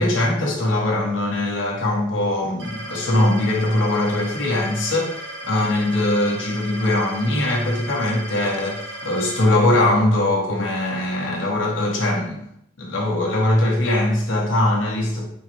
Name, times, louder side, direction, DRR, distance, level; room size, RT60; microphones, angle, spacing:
voice 1, 0.0-12.5 12.8-15.3, left 1 dB, 90° left, -1 dB, 1.1 m, -21 dB
sound 1, 2.6-9.5, right 1 dB, 75° right, 0.9 m, -35 dB
4.1 x 3.7 x 3.0 m, 0.74 s
head